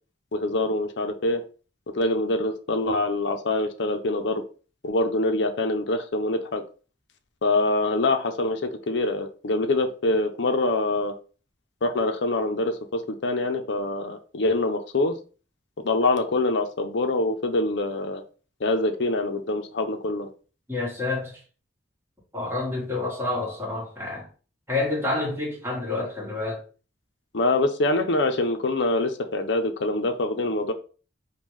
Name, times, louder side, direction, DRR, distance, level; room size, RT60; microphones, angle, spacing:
voice 1, 0.3-1.4 1.9-4.4 4.8-6.6 7.4-11.1 11.8-15.1 15.8-18.2 18.6-20.3 27.3-30.7, left 2 dB, 70° left, 0.6 m, -25 dB
voice 2, 20.7-21.4 22.3-24.3 24.7-26.6, left 2 dB, 15° right, 1.4 m, -28 dB
5.3 x 2.2 x 3.1 m
head